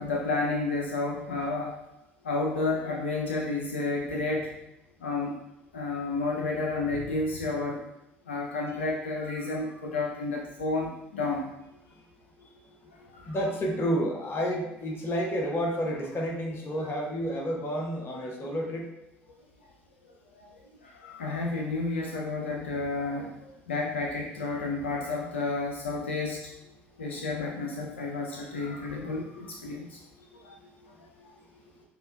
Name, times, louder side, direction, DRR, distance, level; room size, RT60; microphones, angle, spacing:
voice 1, 0.0-1.8 2.2-4.5 5.0-5.4 5.7-7.8 8.3-11.5 13.1-13.4 20.4-20.5 20.8-26.5 27.0-30.0 30.4-30.5 31.0-31.3, left 3 dB, 85° left, -1 dB, 0.4 m, -31 dB
voice 2, 12.4-18.9 29.2-29.3 29.7-31.8, equal, 40° left, 1 dB, 0.9 m, -32 dB
6.6 x 2.2 x 2.2 m, 0.89 s
hypercardioid pair, 60°, 6 cm